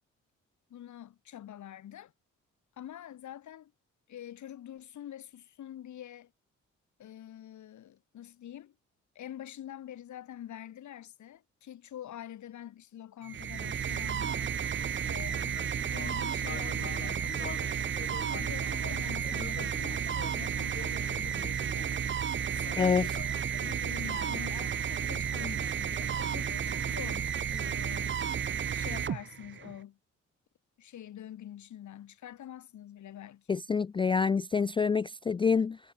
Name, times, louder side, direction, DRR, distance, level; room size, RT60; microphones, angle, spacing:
voice 1, 0.7-2.1 2.8-3.7 4.1-6.3 7.0-8.7 9.1-14.5 15.1-17.4 18.3-21.6 22.5-23.3 23.6-28.2 28.7-30.0 30.8-33.6, left 11 dB, 70° left, 6.5 m, -46 dB
sound 1, 13.2-29.8, right 8 dB, 40° right, 0.9 m, -32 dB
sound 2, 14.8-28.5, left 6 dB, 40° left, 4.6 m, -48 dB
voice 2, 22.8-23.1 33.5-35.8, left 5 dB, 15° left, 0.3 m, -27 dB
cardioid pair, 90°, 30 cm